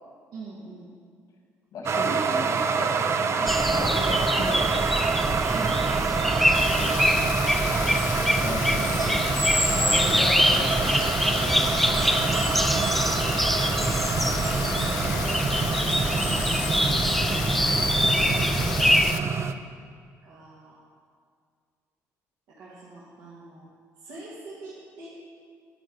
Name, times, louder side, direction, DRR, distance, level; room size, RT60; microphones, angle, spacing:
voice 1, 0.3-0.9 5.5-5.8 8.4-9.2 12.7-13.0 14.8-16.0 17.5-18.3 19.8-19.9 20.2-20.8 22.5-23.7 24.0-25.1, right 3 dB, 80° right, -7 dB, 1.7 m, -43 dB
voice 2, 1.7-4.9 6.6-7.4 8.4-9.2 9.7-11.0 11.3-11.6 14.6-14.8 16.5-16.8, left 2 dB, 65° left, 1 dB, 1.9 m, -35 dB
sound 1, 1.9-19.5, right 5 dB, 45° right, 0.5 m, -27 dB
sound 2, 3.5-19.1, equal, ahead, 0.5 m, -25 dB
Rain, 6.5-19.2, left 10 dB, 90° left, 0.4 m, -35 dB
11.0 x 4.6 x 7.8 m, 2.1 s
supercardioid pair, 75°, 6 cm